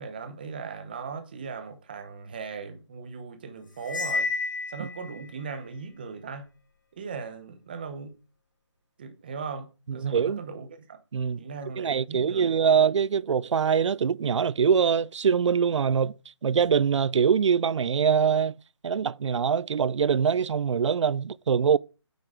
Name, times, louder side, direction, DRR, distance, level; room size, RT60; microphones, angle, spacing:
voice 1, 0.0-4.3 4.7-6.5 6.9-8.1 9.0-11.0 11.4-12.8, right 5 dB, 20° right, 0.9 m, -38 dB
Cymbal, 3.8-5.3, left 4 dB, 45° left, 1.0 m, -30 dB
voice 2, 9.9-10.4 11.1-11.4 11.8-16.1 16.4-18.5 18.8-21.8, right 7 dB, 80° right, 0.4 m, -23 dB
9.2 x 7.7 x 3.8 m
hypercardioid pair, 180°, 15 cm